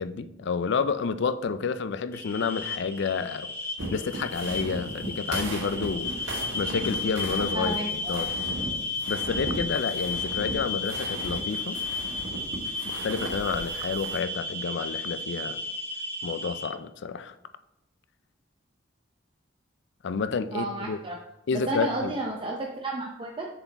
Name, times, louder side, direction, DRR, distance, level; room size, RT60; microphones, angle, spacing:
voice 1, 0.0-3.5 3.9-6.1 6.6-8.3 9.1-11.8 12.8-15.6 16.2-17.3 20.0-21.0 21.5-22.1, left 5 dB, 65° left, 12 dB, 0.4 m, -30 dB
sound 1, 2.1-16.7, left 3 dB, 10° left, 1.3 m, -33 dB
sound 2, 3.8-14.2, right 2 dB, 80° right, 1.4 m, -37 dB
voice 2, 7.5-8.2 20.5-21.2 21.5-23.5, right 2 dB, 25° right, 0 dB, 0.6 m, -32 dB
6.8 x 4.8 x 4.1 m, 0.90 s
head